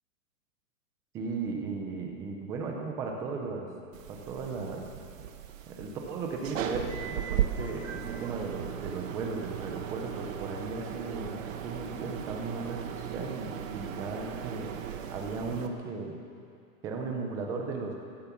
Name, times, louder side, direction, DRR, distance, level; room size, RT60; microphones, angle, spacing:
voice 1, 1.1-3.7 4.1-4.8 5.7-14.7 15.1-16.2 16.8-17.9, right 4 dB, 5° right, 1 dB, 0.4 m, -36 dB
sound 1, 3.9-15.7, right 9 dB, 55° right, 1.3 m, -37 dB
15.0 x 12.0 x 7.0 m, 2.5 s
hypercardioid pair, 150°, 47 cm